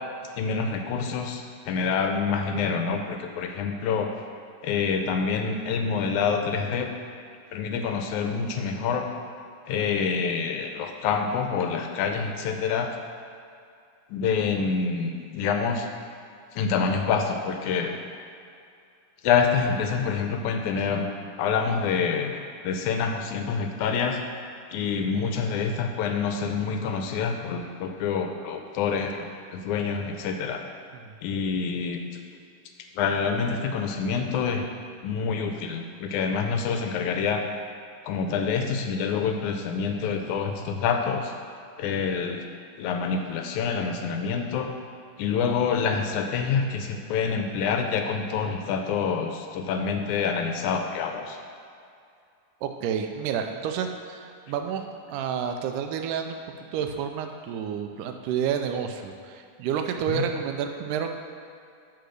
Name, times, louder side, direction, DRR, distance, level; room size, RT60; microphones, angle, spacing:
voice 1, 0.4-4.1 4.6-6.9 7.5-9.1 9.7-12.9 14.1-15.9 16.5-18.0 19.2-21.1 21.4-22.4 22.6-24.2 24.7-30.6 31.2-32.0 33.0-34.7 35.0-37.4 38.0-41.3 41.8-42.5 42.8-44.7 45.2-51.4 60.1-60.2, left 5 dB, 80° left, 5 dB, 2.0 m, -27 dB
voice 2, 52.6-61.1, right 8 dB, 85° right, 5 dB, 2.2 m, -30 dB
11.5 x 3.9 x 6.6 m, 2.4 s
omnidirectional pair, 3.6 m